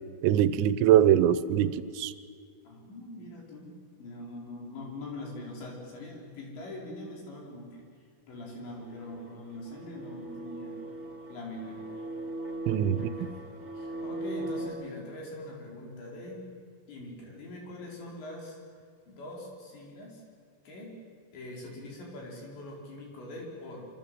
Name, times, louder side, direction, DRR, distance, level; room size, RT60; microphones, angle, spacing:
voice 1, 0.2-2.1 12.7-13.1, right 10 dB, 85° right, 14 dB, 3.5 m, -23 dB
voice 2, 2.6-7.9 8.3-10.8 11.3-12.0 12.9-13.3 13.8-16.5 16.9-18.6 19.1-20.2 20.6-21.0 21.3-23.9, left 1 dB, 60° left, -1 dB, 6.8 m, -43 dB
sound 1, 8.7-14.7, right 2 dB, 20° right, 2.4 m, -39 dB
26.0 x 25.0 x 7.8 m, 2.1 s
omnidirectional pair, 5.9 m